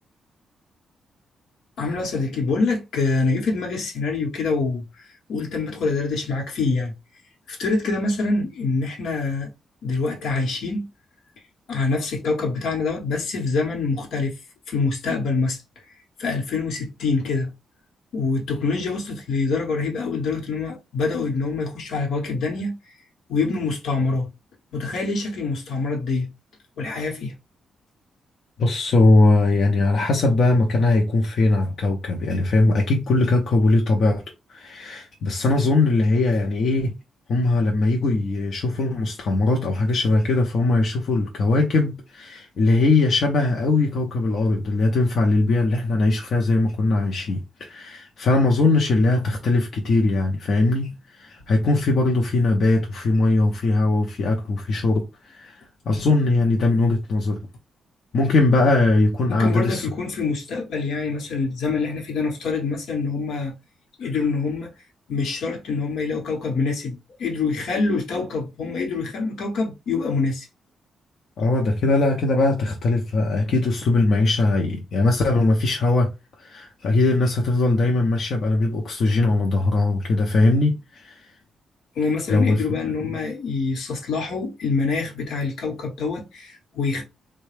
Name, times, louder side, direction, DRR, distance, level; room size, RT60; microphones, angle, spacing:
voice 1, 1.8-5.0 5.3-6.9 7.5-9.5 9.8-10.9 11.7-14.4 14.7-15.6 16.2-17.5 18.1-22.8 23.3-24.3 24.7-26.3 26.8-27.3 59.3-63.5 64.0-64.7 65.1-70.4 82.0-87.0, left 4 dB, 80° left, 1.1 m, -25 dB
voice 2, 28.6-34.2 34.5-37.0 37.3-55.6 55.9-57.4 58.1-59.9 71.4-81.2 82.3-82.6, left 2 dB, 55° left, 0.7 m, -20 dB
3.7 x 2.2 x 3.3 m
cardioid pair, 130°, 0 cm